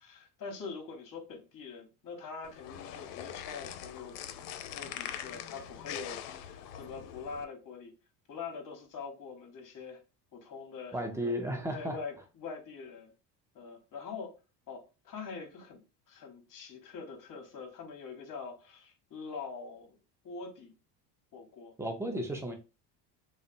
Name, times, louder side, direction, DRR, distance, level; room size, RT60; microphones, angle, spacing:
voice 1, 0.0-4.2 4.7-7.9 8.3-10.0 10.3-11.0 11.7-13.1 13.5-14.4 14.7-20.0 20.2-20.7 21.3-21.7, left 5 dB, 40° left, 1.0 m, -44 dB
sound 1, 2.4-7.4, left 10 dB, 75° left, 0.5 m, -43 dB
voice 2, 10.9-12.0 21.8-22.5, equal, 5° right, 0.5 m, -34 dB
2.7 x 2.1 x 2.5 m
supercardioid pair, 90°, 47 cm